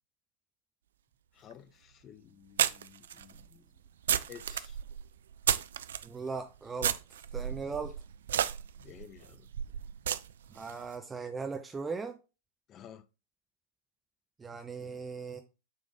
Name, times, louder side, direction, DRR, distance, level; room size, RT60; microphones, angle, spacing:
voice 1, 1.3-3.6 4.3-4.8 8.8-9.5 12.7-13.0, left 8 dB, 30° left, 0.5 m, -52 dB
sound 1, 1.5-1.6 2.6-6.1 6.8-10.7, right 9 dB, 60° right, 0.3 m, -33 dB
voice 2, 6.0-6.9 7.3-7.9 10.5-12.1 14.4-15.4, right 5 dB, 15° right, 0.6 m, -38 dB
7.9 x 3.5 x 3.7 m
figure-of-eight pair, 90°, 0 cm